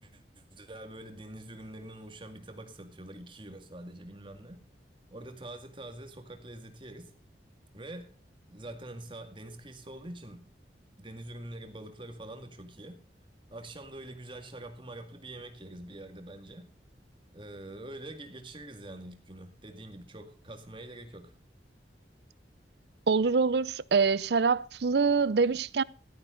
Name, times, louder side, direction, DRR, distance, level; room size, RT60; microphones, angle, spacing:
voice 1, 0.0-4.6 5.1-7.1 7.7-8.2 8.5-10.5 11.0-13.0 13.5-16.7 17.3-21.3, right 1 dB, 30° right, 2.1 m, -45 dB
voice 2, 23.1-25.8, right 4 dB, 65° right, 0.5 m, -25 dB
15.0 x 12.5 x 3.9 m
head